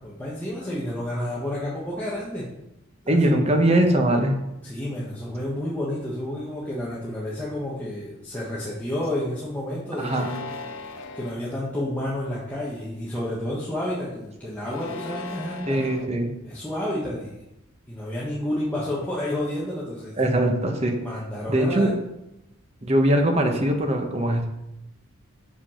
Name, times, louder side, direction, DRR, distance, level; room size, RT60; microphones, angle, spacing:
voice 1, 0.0-2.4 3.0-3.3 4.6-10.3 11.1-15.9 16.4-17.4 17.9-20.4 21.0-21.9, left 1 dB, 10° left, -7 dB, 1.4 m, -30 dB
voice 2, 3.1-4.4 10.0-10.3 15.7-16.3 20.2-21.0 21.5-21.9 22.8-24.5, right 1 dB, 30° right, 3 dB, 1.1 m, -21 dB
sound 1, 9.9-11.4 12.1-12.6 14.6-16.1, left 3 dB, 80° left, 1.0 m, -37 dB
6.9 x 5.2 x 5.7 m, 0.89 s
head